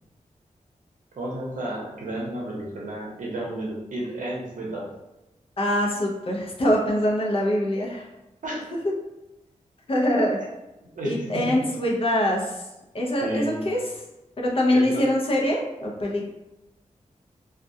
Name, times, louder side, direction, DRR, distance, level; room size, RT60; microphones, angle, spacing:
voice 1, 1.2-4.9 8.4-8.7 11.0-11.6 13.2-13.6 14.7-15.0, right 1 dB, 80° right, -3 dB, 0.7 m, -32 dB
voice 2, 5.6-8.0 9.9-10.4 11.0-12.6 12.9-13.8 14.4-16.3, left 1 dB, 45° left, -2 dB, 0.5 m, -23 dB
2.2 x 2.1 x 2.7 m, 0.98 s
wide cardioid pair, 120°, 13 cm